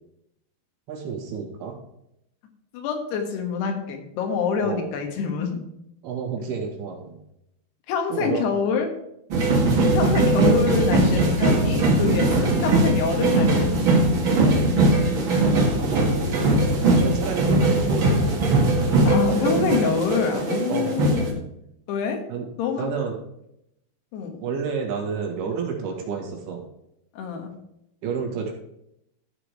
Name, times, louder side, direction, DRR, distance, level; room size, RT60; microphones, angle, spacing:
voice 1, 0.9-1.7 4.6-4.9 6.0-7.2 8.1-8.4 15.5-15.9 17.0-18.1 20.7-20.9 22.3-22.5 22.8-23.1 24.4-26.6 28.0-28.5, right 6 dB, 75° right, 1 dB, 3.9 m, -30 dB
voice 2, 2.7-5.6 7.9-8.9 9.9-14.2 19.1-21.4 21.9-22.2 22.6-22.9 24.1-24.4 25.5-25.6 27.1-27.5, left 6 dB, 90° left, 4 dB, 3.5 m, -26 dB
sound 1, 9.3-21.3, right 2 dB, 45° right, 1.8 m, -20 dB
13.5 x 5.0 x 4.9 m, 0.79 s
omnidirectional pair, 4.6 m